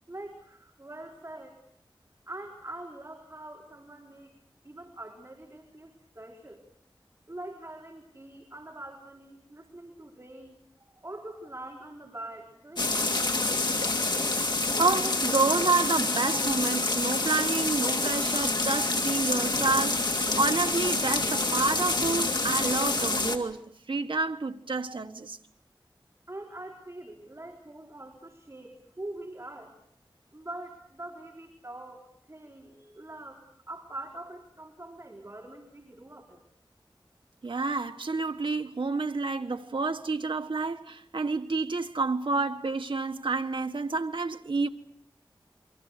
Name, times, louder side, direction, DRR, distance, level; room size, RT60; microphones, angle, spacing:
voice 1, 0.1-1.6 2.3-4.3 4.6-6.6 7.3-13.3 26.3-29.7 30.3-36.4, right 1 dB, 30° right, 4.1 m, -44 dB
sound 1, 12.8-23.4, left 2 dB, 60° left, 2.8 m, -27 dB
voice 2, 14.8-20.0 20.4-25.4 37.4-44.7, right 3 dB, 75° right, 1.4 m, -29 dB
28.5 x 24.5 x 6.6 m
wide cardioid pair, 70°, 9 cm